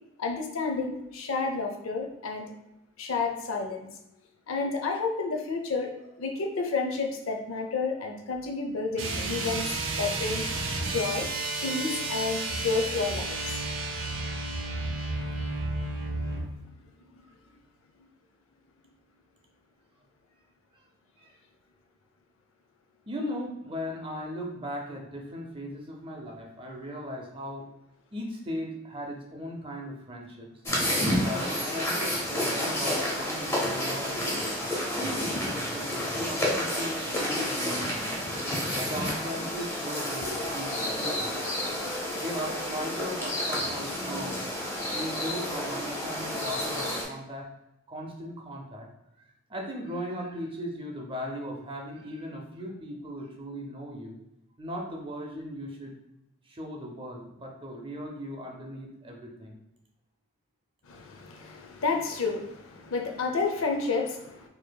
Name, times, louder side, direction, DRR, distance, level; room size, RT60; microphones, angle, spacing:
voice 1, 0.2-2.5 3.0-3.9 4.5-5.9 6.2-10.5 10.8-11.3 11.6-13.6 18.0-18.1 38.6-38.8 40.2-40.3 60.9-64.5, left 4 dB, 70° left, 3 dB, 0.5 m, -30 dB
sound 1, 8.9-16.5, right 2 dB, 65° right, 0.6 m, -32 dB
voice 2, 23.1-27.7 28.1-30.5 31.2-34.7 35.0-38.2 38.7-41.3 42.2-44.4 44.9-47.5 47.9-48.9 49.5-54.2 54.6-56.0 56.5-59.6, equal, 25° right, 0 dB, 0.6 m, -38 dB
sound 2, 30.7-47.0, left 1 dB, 10° left, 0.7 m, -30 dB
4.5 x 2.7 x 2.2 m, 0.85 s
head